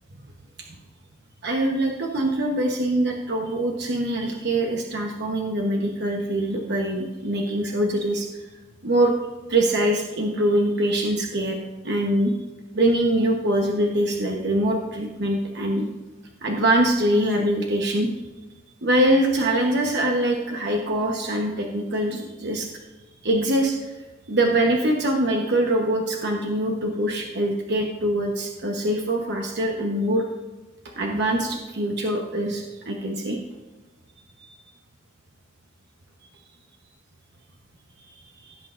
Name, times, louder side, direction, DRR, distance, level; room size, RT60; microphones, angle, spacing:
voice 1, 1.4-8.5 8.8-9.1 9.5-11.6 11.8-12.3 12.7-15.9 16.4-18.1 18.8-22.7 23.2-23.9 24.3-30.2 31.0-33.4 38.1-38.2 38.4-38.5, right 1 dB, 60° right, 1 dB, 1.0 m, -23 dB
16.0 x 8.4 x 2.5 m, 1.2 s
head